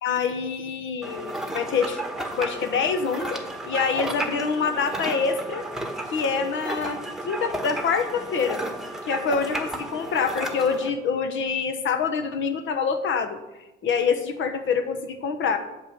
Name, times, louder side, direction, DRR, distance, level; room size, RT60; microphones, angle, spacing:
voice 1, 0.0-2.0 2.4-5.6 6.1-8.6 9.1-13.4 13.8-15.6, left 5 dB, 75° left, 9 dB, 1.1 m, -26 dB
sound 1, 1.0-10.9, right 1 dB, ahead, 1.2 m, -33 dB
8.6 x 5.5 x 6.4 m, 1.0 s
cardioid pair, 90°, 20 cm